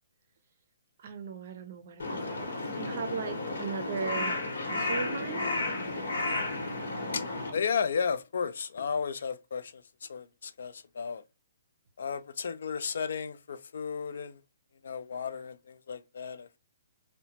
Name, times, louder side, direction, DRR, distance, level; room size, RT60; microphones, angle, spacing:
voice 1, 1.0-4.4 4.6-5.5, right 5 dB, 40° right, 0.5 m, -38 dB
Crow, 2.0-7.5, left 2 dB, 90° left, 1.0 m, -33 dB
voice 2, 7.5-11.2 12.0-14.4 14.8-16.6, left 6 dB, 65° left, 0.3 m, -34 dB
2.8 x 2.1 x 2.7 m
hypercardioid pair, 175°, 0 cm